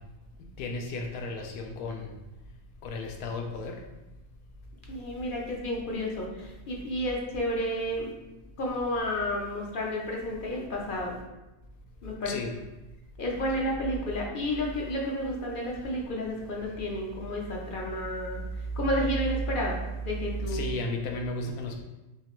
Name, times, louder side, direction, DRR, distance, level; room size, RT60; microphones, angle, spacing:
voice 1, 0.6-2.1 2.8-3.8 12.3-12.6 20.4-21.8, left 3 dB, 85° left, 2 dB, 1.2 m, -34 dB
voice 2, 4.9-8.1 8.6-11.2 12.0-12.4 13.2-20.7, equal, 55° left, -2 dB, 0.5 m, -31 dB
3.8 x 3.2 x 3.0 m, 1.0 s
omnidirectional pair, 1.6 m